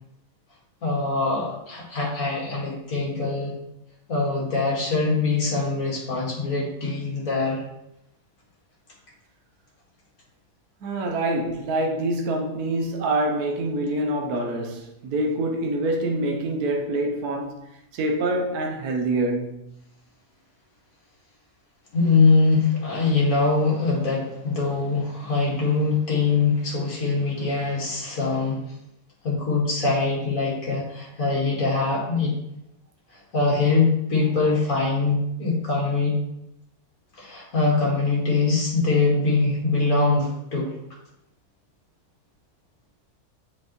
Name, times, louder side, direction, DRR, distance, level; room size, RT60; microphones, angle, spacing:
voice 1, 0.8-3.5 4.1-7.6 21.9-28.6 29.2-32.3 33.3-36.2 37.2-40.7, left 3 dB, 60° left, 2.3 m, -23 dB
voice 2, 10.8-17.6 17.9-19.6, right 1 dB, 70° right, 1.4 m, -26 dB
7.7 x 5.4 x 3.1 m
omnidirectional pair, 1.7 m